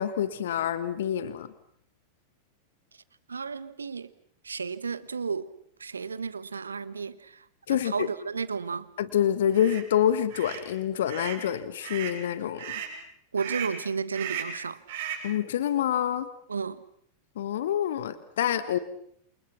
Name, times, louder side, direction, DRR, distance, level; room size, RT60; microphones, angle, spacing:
voice 1, 0.0-1.5 7.7-8.1 9.0-12.7 15.2-16.3 17.3-18.8, left 10 dB, 60° left, 1.4 m, -27 dB
voice 2, 3.3-4.1 4.4-5.5 5.8-8.9 13.3-14.8 16.5-16.8, right 5 dB, 75° right, 1.2 m, -33 dB
sound 1, 9.5-9.8 10.3-10.6 11.1-11.4 11.8-12.2 12.6-12.9 13.4-13.8 14.1-14.6 14.9-15.3, right 9 dB, 55° right, 6.9 m, -36 dB
29.0 x 28.5 x 5.9 m
figure-of-eight pair, 90°, 0 cm